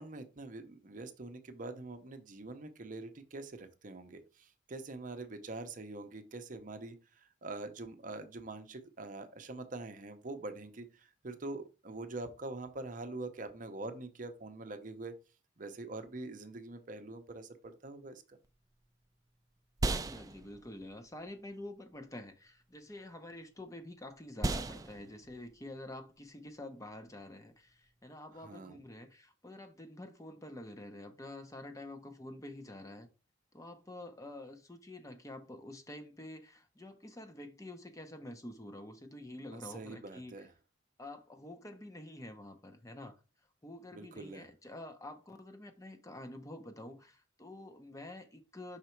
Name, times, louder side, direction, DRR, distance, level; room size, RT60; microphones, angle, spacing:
voice 1, 0.0-15.1 15.6-18.4 28.4-28.8 39.5-40.5 43.9-44.5, right 2 dB, 45° right, 0.7 m, -44 dB
sound 1, 18.4-28.1, right 2 dB, 20° right, 0.3 m, -41 dB
voice 2, 19.9-33.1 33.5-40.5 41.0-43.2 43.6-48.8, left 1 dB, 15° left, 0.6 m, -48 dB
5.7 x 4.0 x 4.4 m
head